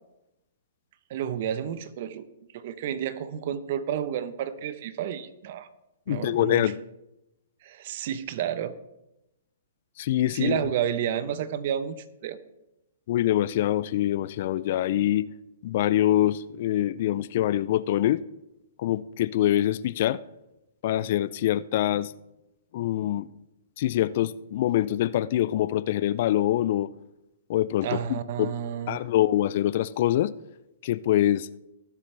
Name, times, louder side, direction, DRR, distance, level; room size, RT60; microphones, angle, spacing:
voice 1, 1.1-2.2 2.5-5.7 6.1-6.7 7.6-8.7 10.3-12.0 12.2-12.4 27.8-29.0, right 9 dB, 50° right, 0.9 m, -30 dB
voice 2, 6.1-6.8 10.0-10.6 13.1-15.2 15.6-18.2 18.8-20.2 20.8-22.1 22.7-23.3 23.8-26.9 27.5-28.5 28.9-30.3 30.8-31.5, left 13 dB, 50° left, 0.4 m, -24 dB
19.0 x 7.4 x 3.4 m
hypercardioid pair, 135°, 0 cm